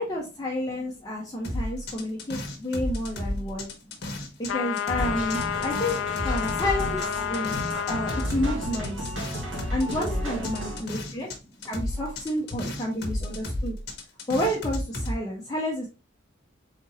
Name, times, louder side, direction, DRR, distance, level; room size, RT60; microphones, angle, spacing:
voice 1, 0.0-3.7 4.4-9.1 9.7-11.3 11.7-13.8 14.3-15.9, left 1 dB, 20° left, 0.8 m, -30 dB
voice 2, 0.7-4.6 9.1-11.0 11.3-12.1, equal, ahead, 1.3 m, -47 dB
sound 1, 1.4-4.5 4.8-11.4 11.6-15.1, left 1 dB, 55° left, 1.2 m, -32 dB
sound 2, 4.5-8.3, left 9 dB, 85° left, 0.4 m, -30 dB
sound 3, 5.0-10.8, equal, 80° right, 2.1 m, -34 dB
4.3 x 3.9 x 3.0 m
head